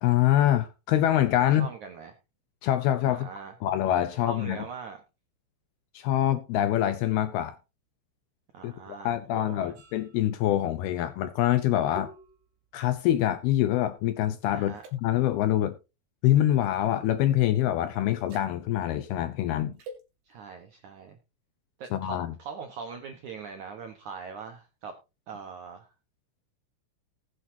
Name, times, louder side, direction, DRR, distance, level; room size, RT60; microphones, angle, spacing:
voice 1, 0.0-1.7 2.6-3.3 3.6-4.6 5.9-7.6 8.6-12.1 12.7-15.8 16.2-19.7 21.9-22.3, left 12 dB, 80° left, 2.3 m, -25 dB
voice 2, 1.6-2.1 3.1-3.5 4.2-5.0 8.5-9.7 14.5-14.8 20.3-21.2 21.8-24.9 25.3-25.9, right 5 dB, 75° right, 1.8 m, -41 dB
sound 1, 9.7-14.3 14.7-14.9 16.6-16.9 18.1-18.5 19.8-20.0, right 2 dB, 55° right, 3.8 m, -49 dB
19.5 x 8.2 x 2.7 m
omnidirectional pair, 5.1 m